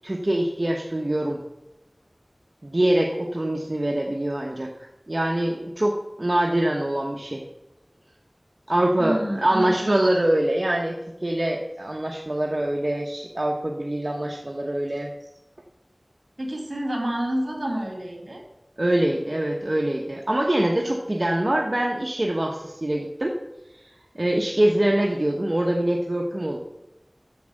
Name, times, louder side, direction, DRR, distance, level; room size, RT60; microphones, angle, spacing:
voice 1, 0.0-1.4 2.6-4.7 5.1-7.4 8.7-15.1 18.8-23.3 24.1-26.6, right 1 dB, 55° right, 1 dB, 1.0 m, -24 dB
voice 2, 9.0-9.9 16.4-18.4, right 1 dB, 75° right, 0 dB, 3.0 m, -28 dB
9.3 x 7.2 x 6.6 m, 0.93 s
wide cardioid pair, 40°, 0 cm